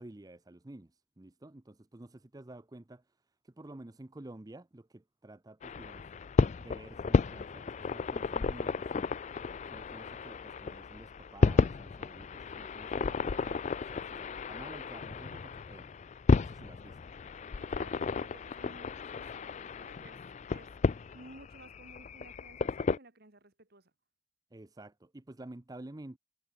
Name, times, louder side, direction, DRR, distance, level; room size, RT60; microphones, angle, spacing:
voice 1, 0.0-6.1 6.6-9.1 9.4-16.0 16.4-17.0 24.5-26.2, right 1 dB, 20° right, 0.5 m, -51 dB
sound 1, 5.6-23.0, left 4 dB, 35° left, 0.3 m, -33 dB
voice 2, 17.6-20.2 20.5-23.9, right 2 dB, 50° right, 2.4 m, -56 dB
head